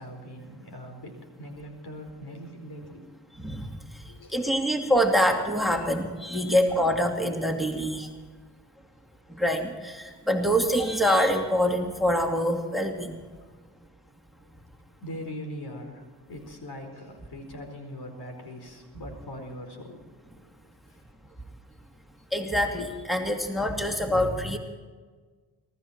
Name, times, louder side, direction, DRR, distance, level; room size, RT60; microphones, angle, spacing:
voice 1, 0.0-3.1 4.1-4.7 13.4-13.5 15.0-20.0 20.9-21.0, equal, 65° left, 4 dB, 4.7 m, -41 dB
voice 2, 3.4-4.0 4.3-8.1 9.3-13.2 22.3-24.6, equal, ahead, 3 dB, 2.6 m, -25 dB
23.0 x 14.0 x 4.4 m, 1.4 s
supercardioid pair, 45°, 42 cm